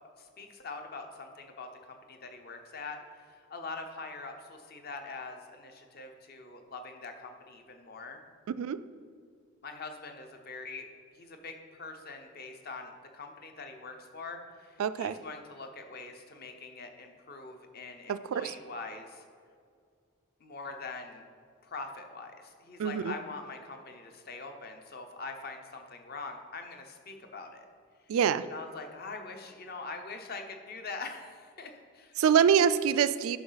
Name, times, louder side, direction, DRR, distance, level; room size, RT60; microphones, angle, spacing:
voice 1, 0.2-8.2 9.6-10.8 11.1-19.3 20.4-21.2 21.6-27.7 28.0-28.1 28.5-32.2, left 3 dB, 45° left, 5 dB, 0.8 m, -43 dB
voice 2, 8.5-8.8 14.8-15.1 18.1-18.5 22.8-23.1 28.1-28.4 32.2-33.4, right 7 dB, 75° right, 14 dB, 0.3 m, -25 dB
10.5 x 5.6 x 4.0 m, 2.2 s
head